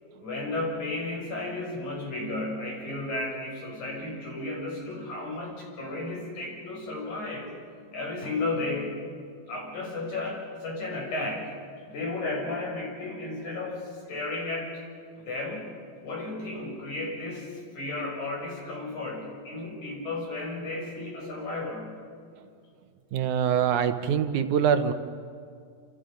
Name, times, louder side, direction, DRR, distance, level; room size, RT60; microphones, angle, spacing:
voice 1, 0.2-7.5 7.9-9.0 9.5-11.5 11.9-14.8 15.2-15.7 16.0-22.0, left 2 dB, 65° left, -2 dB, 8.2 m, -33 dB
voice 2, 23.1-24.9, right 8 dB, 75° right, 9 dB, 2.3 m, -24 dB
28.5 x 28.0 x 5.2 m, 2.2 s
omnidirectional pair, 3.6 m